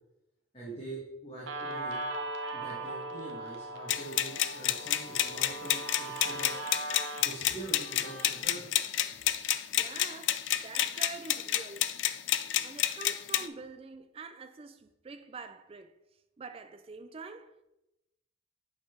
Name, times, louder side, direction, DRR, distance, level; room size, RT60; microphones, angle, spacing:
voice 1, 0.5-2.0 2.5-6.5 7.2-8.7, right 2 dB, 30° left, 1.7 m, -44 dB
Guitar, 1.5-8.4, right 2 dB, 75° right, 0.8 m, -39 dB
sound 1, 3.9-13.5, left 12 dB, 65° left, 0.4 m, -30 dB
voice 2, 9.7-11.9 12.6-15.9 16.4-17.6, right 4 dB, 30° right, 0.3 m, -46 dB
8.5 x 4.1 x 4.5 m
head